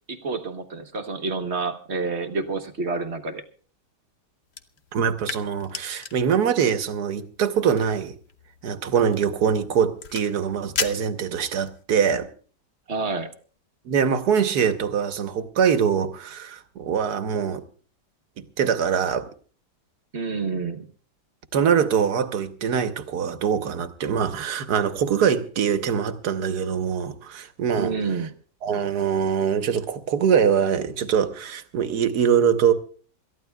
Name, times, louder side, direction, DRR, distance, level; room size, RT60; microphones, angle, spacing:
voice 1, 0.1-3.4 12.9-13.3 20.1-20.8 27.7-28.3, right 4 dB, 45° right, 1.3 m, -28 dB
sound 1, 4.5-11.8, left 6 dB, 45° left, 0.9 m, -37 dB
voice 2, 4.9-8.2 8.6-12.3 13.8-17.6 18.4-19.3 21.5-28.0 28.6-32.7, right 7 dB, 70° right, 1.6 m, -23 dB
27.0 x 14.0 x 2.3 m
omnidirectional pair, 1.8 m